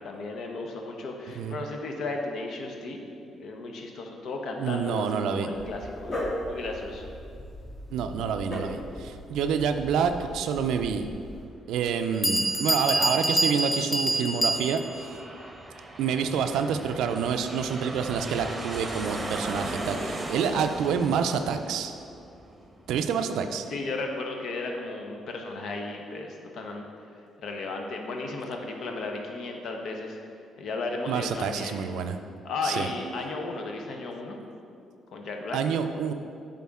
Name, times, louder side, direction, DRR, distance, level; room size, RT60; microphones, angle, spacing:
voice 1, 0.0-3.0 3.3-7.1 23.7-26.8 27.4-30.2 30.6-31.8 32.4-34.4 35.1-35.7, left 3 dB, 70° left, 2 dB, 0.8 m, -34 dB
voice 2, 4.6-5.5 7.9-11.1 11.7-15.2 16.0-21.9 22.9-23.7 31.1-32.2 32.6-32.9 35.5-36.1, right 6 dB, 85° right, 8 dB, 0.4 m, -28 dB
Dog, 5.5-11.4, left 1 dB, 35° left, 1.3 m, -38 dB
Bell, 11.1-11.2 11.9-12.0 12.2-15.0, right 1 dB, 15° left, 0.5 m, -26 dB
Aircraft, 12.1-23.1, right 1 dB, 25° right, 0.8 m, -38 dB
8.3 x 3.8 x 3.6 m, 2.5 s
cardioid pair, 90°, 0 cm